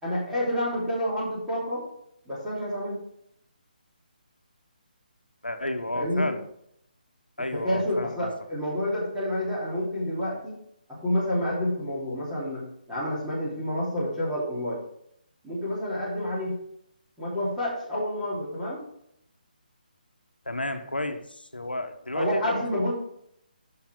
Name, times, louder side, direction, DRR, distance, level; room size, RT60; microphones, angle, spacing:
voice 1, 0.0-1.8 2.2-3.0 5.9-6.3 7.5-10.5 10.9-14.8 15.4-16.6 17.2-18.8 22.1-22.9, left 1 dB, 5° right, -11 dB, 3.2 m, -29 dB
voice 2, 5.4-6.5 7.4-8.3 20.4-22.9, left 1 dB, 85° left, 7 dB, 1.3 m, -32 dB
9.1 x 6.5 x 3.7 m, 0.73 s
figure-of-eight pair, 145°, 5 cm